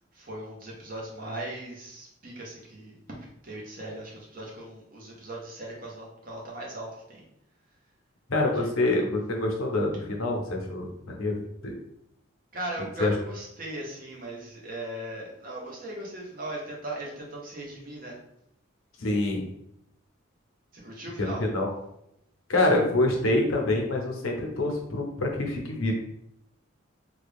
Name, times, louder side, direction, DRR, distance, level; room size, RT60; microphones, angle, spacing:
voice 1, 0.1-7.2 8.5-8.7 12.5-18.2 20.7-21.5, right 1 dB, 45° right, -3 dB, 1.0 m, -38 dB
voice 2, 8.3-11.7 13.0-13.1 19.0-19.4 21.2-21.7 22.5-25.9, left 2 dB, 90° left, 1 dB, 0.8 m, -26 dB
3.4 x 2.3 x 3.4 m, 0.78 s
head